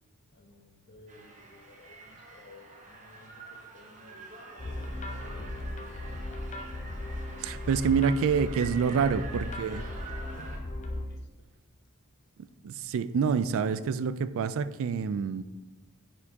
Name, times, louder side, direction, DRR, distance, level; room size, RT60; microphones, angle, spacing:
voice 1, 0.3-6.1 8.8-9.9 10.4-10.5 10.9-11.5, left 1 dB, 50° left, 3 dB, 1.0 m, -54 dB
sound 1, 1.1-10.6, right 3 dB, 35° right, 0.9 m, -47 dB
sound 2, 4.6-11.0, left 1 dB, 35° left, 0.6 m, -37 dB
voice 2, 7.4-9.8 12.6-15.4, right 6 dB, 65° right, 13 dB, 0.3 m, -27 dB
8.8 x 4.4 x 2.8 m, 1.2 s
head